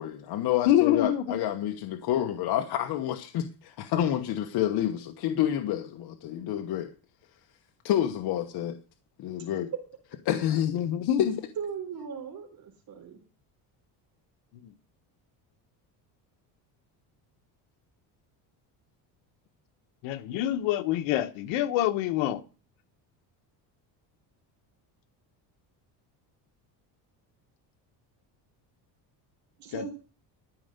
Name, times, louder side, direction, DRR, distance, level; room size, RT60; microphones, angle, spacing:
voice 1, 0.0-6.9 7.8-8.8 9.2-9.7 10.2-10.8 11.2-11.3, left 11 dB, 60° left, 1.2 m, -29 dB
voice 2, 0.6-1.4 10.4-11.3 14.6-14.7 20.0-22.4 29.7-29.9, left 12 dB, 85° left, 1.3 m, -26 dB
voice 3, 11.6-13.2 29.6-29.9, right 7 dB, 50° right, 3.7 m, -38 dB
13.0 x 5.4 x 8.0 m
cardioid pair, 145°, 44 cm